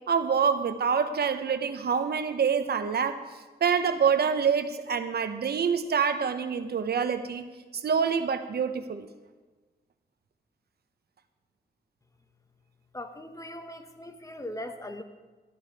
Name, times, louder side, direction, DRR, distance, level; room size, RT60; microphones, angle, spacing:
voice 1, 0.1-3.2 3.6-7.4 7.7-9.1, right 6 dB, 70° right, 9 dB, 0.9 m, -26 dB
voice 2, 12.9-15.0, left 1 dB, 20° left, 7 dB, 1.2 m, -39 dB
13.5 x 12.5 x 4.8 m, 1.3 s
cardioid pair, 90°, 17 cm